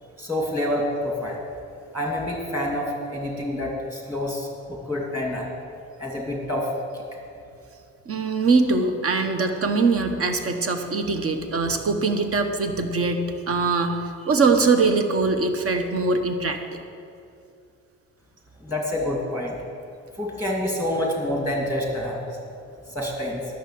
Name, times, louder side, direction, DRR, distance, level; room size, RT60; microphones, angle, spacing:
voice 1, 0.2-1.4 1.9-5.5 6.0-7.0 18.6-19.5 20.2-22.2 22.9-23.4, left 1 dB, 5° right, -1 dB, 2.6 m, -27 dB
voice 2, 8.1-16.6, right 3 dB, 50° right, 6 dB, 1.2 m, -22 dB
11.0 x 6.6 x 8.5 m, 2.5 s
cardioid pair, 90°, 30 cm